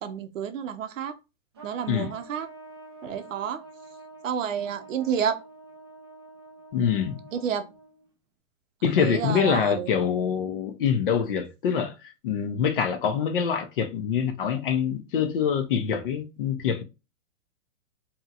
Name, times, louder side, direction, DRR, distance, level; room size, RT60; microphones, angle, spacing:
voice 1, 0.0-1.1 1.6-2.5 3.0-3.6 4.2-5.4 7.3-7.6 9.0-9.9, right 8 dB, 65° right, 0.7 m, -29 dB
Trumpet, 1.5-8.1, right 3 dB, 20° right, 0.3 m, -47 dB
voice 2, 6.7-7.2 8.8-16.8, left 7 dB, 40° left, 0.5 m, -25 dB
2.9 x 2.8 x 2.4 m
hypercardioid pair, 150°, 41 cm